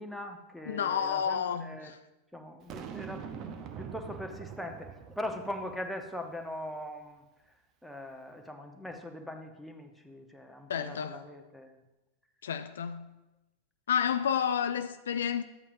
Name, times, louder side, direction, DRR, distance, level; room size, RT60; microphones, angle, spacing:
voice 1, 0.0-1.9 2.3-7.2 7.8-11.7, left 1 dB, ahead, 1.0 m, -41 dB
voice 2, 0.7-2.0 10.7-11.2 12.4-13.1 13.9-15.4, left 8 dB, 65° left, 0.3 m, -30 dB
Boom, 2.7-6.0, right 7 dB, 35° right, 0.7 m, -43 dB
12.0 x 8.4 x 2.6 m
figure-of-eight pair, 90°, 0 cm